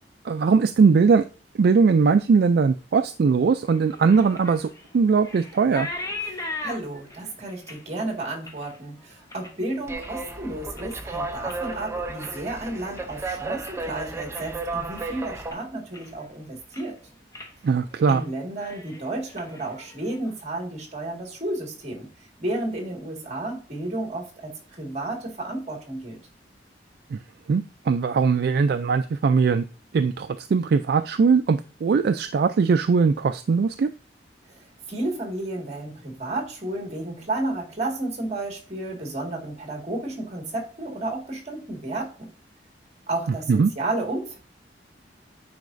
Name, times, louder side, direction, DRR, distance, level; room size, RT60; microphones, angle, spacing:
voice 1, 0.2-1.3 1.6-4.7 4.9-5.9 17.6-18.2 27.1-27.2 27.5-29.6 29.9-33.9 43.5-43.7, right 5 dB, 60° right, 9 dB, 0.3 m, -20 dB
sound 1, 3.7-10.3 10.7-11.1 11.4-13.9 14.2-14.6 15.0-15.1 15.5-16.3 16.6-17.0 17.3-17.5 17.9-18.2 18.5-20.4, left 2 dB, 20° left, 0.9 m, -39 dB
voice 2, 6.3-16.9 18.1-22.1 22.4-26.2 34.5-34.6 34.9-42.3 43.1-44.4, right 2 dB, 40° right, 1 dB, 1.9 m, -32 dB
sound 2, 9.9-15.5, right 3 dB, 15° right, 0.6 m, -33 dB
9.4 x 4.6 x 2.6 m, 0.36 s
head